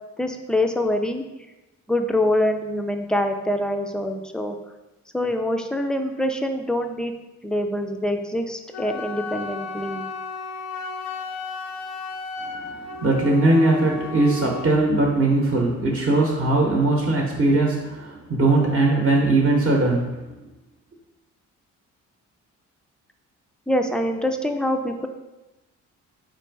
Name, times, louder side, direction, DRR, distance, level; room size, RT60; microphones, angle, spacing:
voice 1, 0.2-1.2 1.9-4.6 5.1-7.1 7.4-10.0 23.7-25.1, left 1 dB, 5° left, 5 dB, 0.3 m, -25 dB
Wind instrument woodwind instrument, 8.7-14.8, left 4 dB, 65° left, 0.5 m, -34 dB
voice 2, 12.4-20.3, right 2 dB, 45° right, -1 dB, 0.8 m, -20 dB
4.3 x 2.5 x 4.5 m, 1.0 s
cardioid pair, 90°, 30 cm